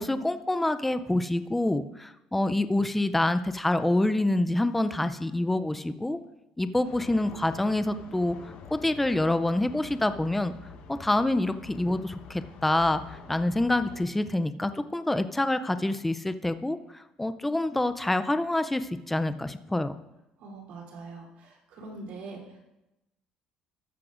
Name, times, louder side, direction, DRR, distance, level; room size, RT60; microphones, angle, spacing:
voice 1, 0.0-6.2 6.6-8.4 8.7-10.5 10.9-19.9, left 1 dB, 5° left, 11 dB, 0.4 m, -27 dB
sound 1, 6.8-14.0, left 5 dB, 65° left, 1.1 m, -47 dB
voice 2, 20.4-22.6, right 3 dB, 75° right, -2 dB, 3.1 m, -43 dB
13.5 x 11.0 x 2.5 m, 0.93 s
cardioid pair, 150°, 2 cm